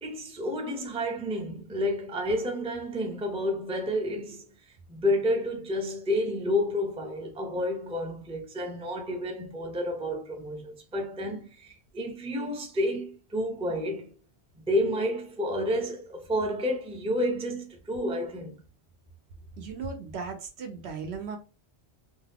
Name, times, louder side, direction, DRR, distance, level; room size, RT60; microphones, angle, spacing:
voice 1, 0.0-4.4 4.9-14.1 14.6-18.6, left 1 dB, 5° right, 0.5 m, -30 dB
voice 2, 19.6-21.4, right 5 dB, 70° right, 1.0 m, -36 dB
2.7 x 2.4 x 3.4 m
omnidirectional pair, 1.1 m